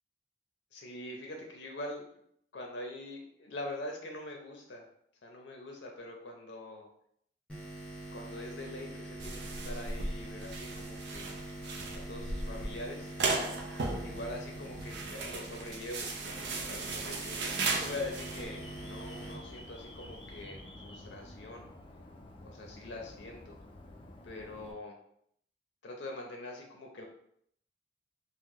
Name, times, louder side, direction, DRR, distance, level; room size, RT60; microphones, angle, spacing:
voice 1, 0.7-2.1 2.5-4.8 5.2-6.9 8.1-11.4 12.1-13.1 14.0-16.1 16.7-21.7 22.4-23.6 24.2-25.0 25.8-27.0, left 2 dB, 85° left, 1 dB, 0.6 m, -43 dB
sound 1, 7.5-20.4, right 1 dB, 5° left, 0.7 m, -45 dB
sound 2, 9.2-18.4, right 3 dB, 70° right, 0.5 m, -37 dB
Alarm, 17.8-24.7, left 1 dB, 30° left, 0.3 m, -50 dB
3.0 x 2.1 x 3.5 m, 0.69 s
head